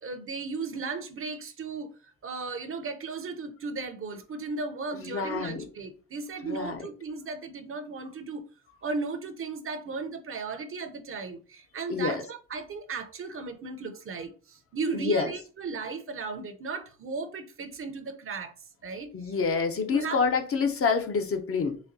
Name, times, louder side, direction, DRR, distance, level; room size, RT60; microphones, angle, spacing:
voice 1, 0.0-8.4 8.8-18.5 18.8-19.1 19.9-20.2, right 4 dB, 45° right, 0.6 m, -36 dB
voice 2, 4.9-5.6 6.4-6.8 11.9-12.2 14.9-15.3 19.1-21.8, left 5 dB, 50° left, 0.7 m, -27 dB
4.0 x 2.3 x 2.6 m
cardioid pair, 65°, 29 cm